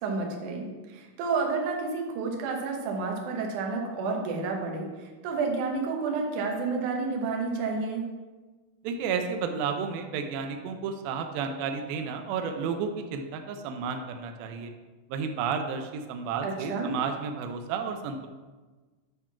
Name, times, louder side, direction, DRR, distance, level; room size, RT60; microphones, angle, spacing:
voice 1, 0.0-8.0 16.4-16.9, right 4 dB, 70° right, 1 dB, 1.9 m, -30 dB
voice 2, 8.8-14.7 15.1-18.3, right 6 dB, 90° right, 5 dB, 2.1 m, -32 dB
9.8 x 3.7 x 5.8 m, 1.3 s
omnidirectional pair, 5.0 m